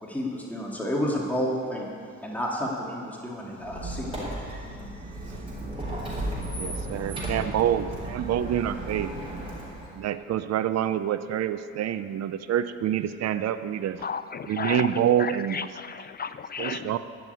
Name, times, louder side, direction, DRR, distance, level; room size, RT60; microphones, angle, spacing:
voice 1, 0.0-1.9 2.2-4.3, equal, 5° left, -4 dB, 2.6 m, -30 dB
Squeak, 3.6-10.0, right 1 dB, 20° right, 3.9 m, -34 dB
voice 2, 6.6-9.1 9.9-14.1 14.4-15.8 16.6-17.0, right 10 dB, 60° right, 12 dB, 0.6 m, -27 dB
voice 3, 14.0-14.9 15.2-16.9, left 6 dB, 35° left, 13 dB, 0.4 m, -33 dB
12.5 x 6.1 x 9.2 m, 2.2 s
cardioid pair, 90°, 30 cm